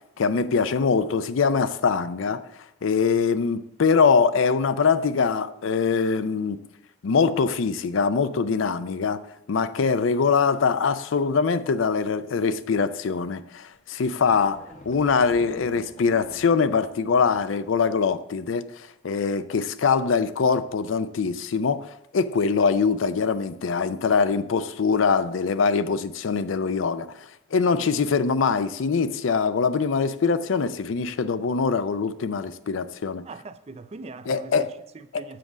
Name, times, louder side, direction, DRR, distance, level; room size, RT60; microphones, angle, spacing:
voice 1, 0.2-2.4 2.8-6.6 7.0-9.2 9.5-14.6 14.9-18.6 19.0-27.1 27.5-33.2 34.3-34.7 35.1-35.2, left 5 dB, 80° left, 0.5 m, -23 dB
sound 1, 13.7-13.8 14.1-17.8, left 1 dB, 40° left, 0.8 m, -46 dB
voice 2, 33.2-35.4, right 3 dB, 35° right, 0.4 m, -41 dB
7.6 x 6.0 x 5.0 m
head